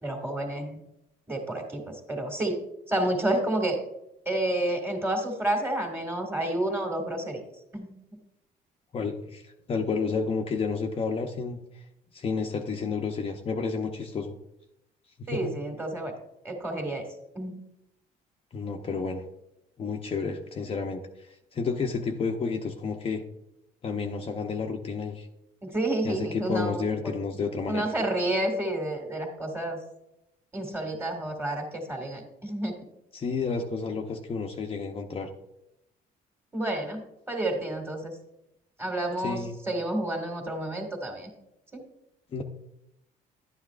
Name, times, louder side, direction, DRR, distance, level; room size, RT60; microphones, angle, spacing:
voice 1, 0.0-0.8 1.3-2.6 2.9-3.8 4.3-7.4 7.7-7.9 15.3-16.1 16.4-17.1 17.3-17.6 25.6-26.8 27.7-29.8 30.5-32.7 36.5-37.0 37.3-38.1 38.8-41.3 41.7-41.8, right 1 dB, 15° right, 2 dB, 2.1 m, -30 dB
voice 2, 8.9-11.6 12.1-14.3 15.2-15.5 18.5-19.2 19.8-23.2 23.8-25.3 26.0-27.9 33.1-35.3 39.2-39.6 42.3-42.4, left 5 dB, 35° left, 2 dB, 0.7 m, -31 dB
11.0 x 9.5 x 2.5 m, 0.85 s
cardioid pair, 110°, 17 cm